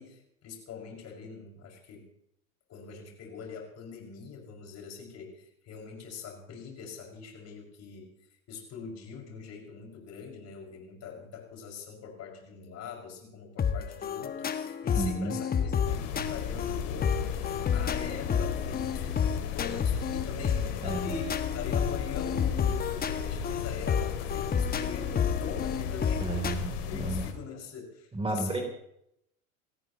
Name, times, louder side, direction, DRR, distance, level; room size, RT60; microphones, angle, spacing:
voice 1, 0.0-2.1 2.7-8.1 8.5-28.6, left 6 dB, 35° left, 0 dB, 5.8 m, -43 dB
sound 1, 13.6-26.5, left 7 dB, 20° left, 1.3 m, -30 dB
voice 2, 14.9-15.4 18.3-18.4 20.8-21.1 26.2-27.2 28.1-28.6, right 2 dB, 15° right, 3 dB, 3.1 m, -32 dB
sound 2, 15.8-27.3, left 7 dB, 60° left, 2.6 m, -35 dB
29.0 x 14.0 x 3.0 m, 0.76 s
figure-of-eight pair, 85°, 43 cm